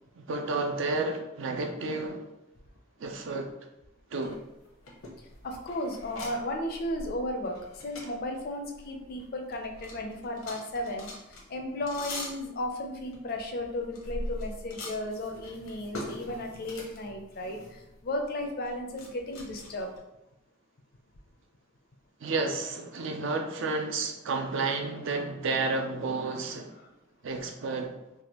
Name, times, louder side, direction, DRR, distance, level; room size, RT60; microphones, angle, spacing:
voice 1, 0.2-2.3 3.0-3.5 4.1-4.4 22.2-26.8 27.2-28.0, right 3 dB, 65° right, 4 dB, 0.4 m, -31 dB
sound 1, 4.2-9.2 9.5-20.0, left 1 dB, 80° left, 0.8 m, -43 dB
voice 2, 5.4-19.9, left 1 dB, 45° left, 3 dB, 0.5 m, -35 dB
3.3 x 2.2 x 2.9 m, 0.90 s
head